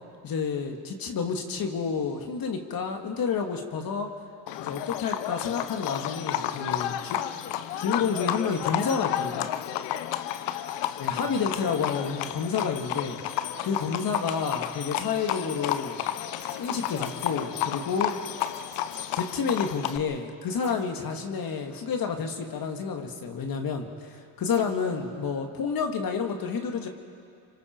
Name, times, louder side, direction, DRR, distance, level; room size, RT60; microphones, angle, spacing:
voice 1, 0.2-4.1 4.6-7.2 7.8-9.5 11.0-13.2 13.6-16.0 16.6-18.1 19.2-23.9 24.4-26.9, left 5 dB, 55° left, 4 dB, 2.3 m, -29 dB
Livestock farm animals working animals, 4.5-20.0, left 12 dB, 80° left, 0.9 m, -31 dB
sound 1, 16.4-17.5 18.4-19.3 20.6-21.0 24.5-24.9, left 1 dB, 25° left, 6.2 m, -50 dB
26.5 x 25.0 x 4.7 m, 2.4 s
supercardioid pair, 75°, 42 cm